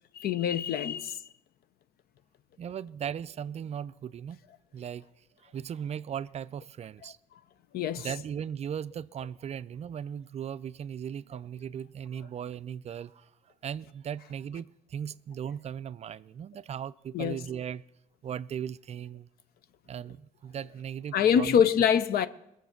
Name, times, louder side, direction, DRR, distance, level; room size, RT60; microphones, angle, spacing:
voice 1, 0.1-1.2 7.7-8.1 17.1-17.4 21.1-22.3, left 8 dB, 65° left, 0.7 m, -25 dB
voice 2, 2.6-4.4 4.7-5.1 5.4-7.2 8.0-13.3 13.6-17.8 18.2-19.3 19.9-21.6, right 8 dB, 40° right, 0.4 m, -37 dB
21.0 x 7.1 x 5.9 m
cardioid pair, 110°, 17 cm